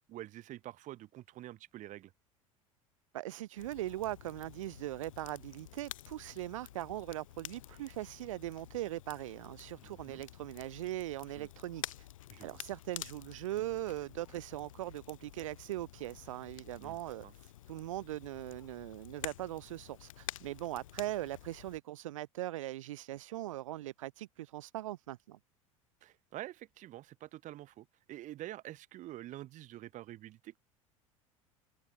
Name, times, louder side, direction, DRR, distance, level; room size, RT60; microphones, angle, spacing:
voice 1, 0.1-2.1 9.8-10.2 11.4-11.5 12.3-12.6 16.8-17.0 17.2-17.3 26.0-30.6, right 15 dB, 45° right, 7.1 m, -47 dB
voice 2, 3.1-12.1 12.4-17.3 17.7-25.4, right 15 dB, 65° right, 0.7 m, -40 dB
Crackle, 3.6-21.8, left 13 dB, 70° left, 2.0 m, -50 dB
figure-of-eight pair, 70°, 18 cm